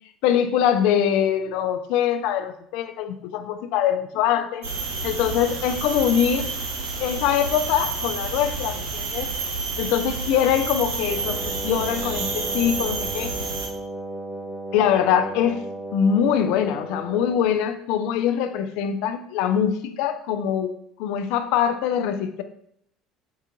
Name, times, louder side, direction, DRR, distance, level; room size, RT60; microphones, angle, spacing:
voice 1, 0.2-4.7 5.0-6.5 7.0-9.3 9.8-13.3 14.7-15.6 15.9-22.4, left 9 dB, 70° left, 9 dB, 0.3 m, -23 dB
sound 1, 4.6-13.7, right 4 dB, 80° right, 0.6 m, -29 dB
Wind instrument woodwind instrument, 11.0-17.6, right 1 dB, 20° right, 0.8 m, -35 dB
4.5 x 2.4 x 2.9 m, 0.72 s
hypercardioid pair, 65°, 0 cm